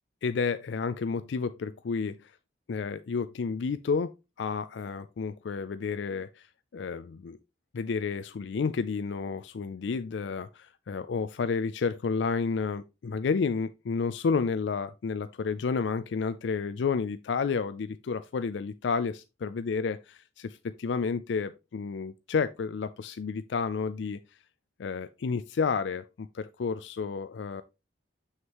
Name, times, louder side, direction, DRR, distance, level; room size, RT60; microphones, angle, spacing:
voice 1, 0.2-2.3 2.7-4.1 4.4-6.5 6.7-7.4 7.7-24.2 24.8-27.6, left 5 dB, 70° left, 0.4 m, -31 dB
7.2 x 6.4 x 2.9 m
head